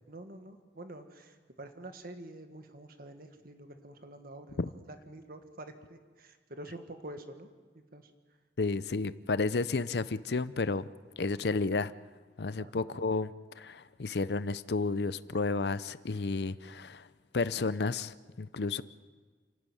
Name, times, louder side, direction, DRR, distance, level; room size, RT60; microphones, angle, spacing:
voice 1, 0.0-7.5 7.7-8.1 12.6-13.0, right 1 dB, 55° right, 7 dB, 1.7 m, -47 dB
voice 2, 8.6-10.9 11.2-11.9 12.4-17.1 17.3-18.8, left 3 dB, 65° left, 16 dB, 0.6 m, -32 dB
29.0 x 12.0 x 9.2 m, 1.5 s
head